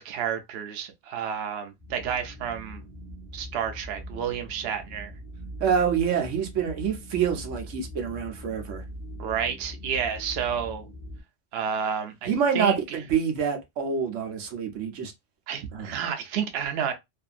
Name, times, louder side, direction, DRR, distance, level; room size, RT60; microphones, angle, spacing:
voice 1, 0.0-2.8 3.3-5.1 9.2-10.9 11.5-13.0 15.5-16.9, right 7 dB, 65° right, 0.8 m, -30 dB
sound 1, 1.8-11.2, equal, 10° left, 0.7 m, -41 dB
voice 2, 5.6-8.8 12.3-15.1 15.7-15.9, right 7 dB, 90° right, 1.1 m, -26 dB
2.7 x 2.5 x 2.4 m
omnidirectional pair, 1.2 m